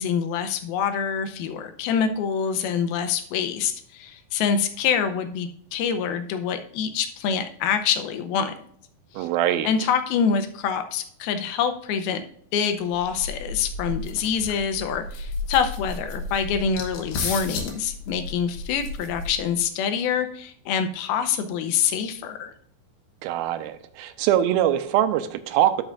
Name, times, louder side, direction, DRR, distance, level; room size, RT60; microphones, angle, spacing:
voice 1, 0.0-8.5 9.2-9.3 9.6-12.3 12.5-22.5, left 7 dB, 90° left, 8 dB, 2.6 m, -26 dB
voice 2, 9.1-9.7 23.2-25.8, right 11 dB, 90° right, 11 dB, 2.5 m, -23 dB
sound 1, 12.9-19.6, left 3 dB, 70° left, 2.7 m, -33 dB
11.5 x 6.3 x 2.5 m, 0.63 s
omnidirectional pair, 4.3 m